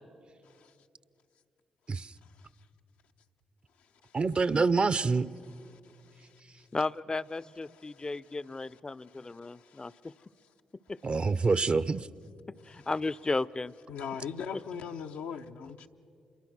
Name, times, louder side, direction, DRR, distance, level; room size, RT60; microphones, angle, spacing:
voice 1, 4.1-5.3 11.0-12.1, right 4 dB, 45° right, 0.6 m, -26 dB
voice 2, 6.7-10.1 10.9-11.0 12.5-13.7 14.5-14.6 15.6-15.7, left 3 dB, 30° left, 0.5 m, -34 dB
voice 3, 9.4-9.8 13.9-15.9, left 7 dB, 85° left, 0.8 m, -39 dB
27.0 x 22.5 x 6.1 m
supercardioid pair, 50°, 3 cm